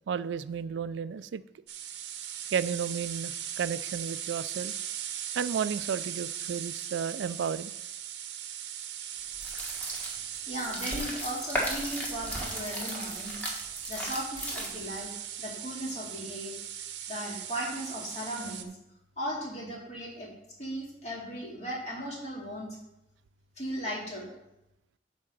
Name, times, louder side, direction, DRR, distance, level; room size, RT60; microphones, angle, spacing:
voice 1, 0.1-1.4 2.5-4.7 5.3-7.7, right 7 dB, 90° right, 16 dB, 0.3 m, -32 dB
sound 1, 1.7-18.6, right 10 dB, 75° right, 0.7 m, -39 dB
sound 2, 9.3-15.0, equal, 10° left, 1.6 m, -36 dB
voice 2, 10.5-13.3 13.6-15.1 15.4-16.6 17.1-18.7 19.2-20.3 20.6-22.7 23.6-24.3, equal, 40° left, -3 dB, 2.5 m, -37 dB
9.7 x 3.7 x 6.5 m, 0.85 s
head